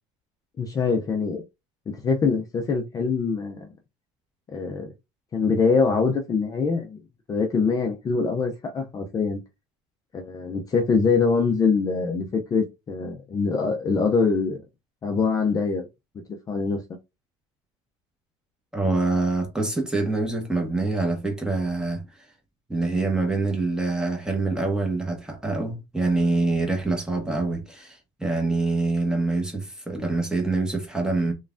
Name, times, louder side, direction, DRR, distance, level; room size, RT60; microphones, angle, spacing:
voice 1, 0.6-1.4 1.9-3.7 4.5-4.9 5.3-7.0 7.3-9.4 10.1-14.6 15.0-15.9 16.5-16.8, left 4 dB, 25° left, 0.5 m, -24 dB
voice 2, 18.7-22.0 22.7-31.3, right 3 dB, 5° right, 0.9 m, -25 dB
3.1 x 2.2 x 2.4 m
supercardioid pair, 110°, 14 cm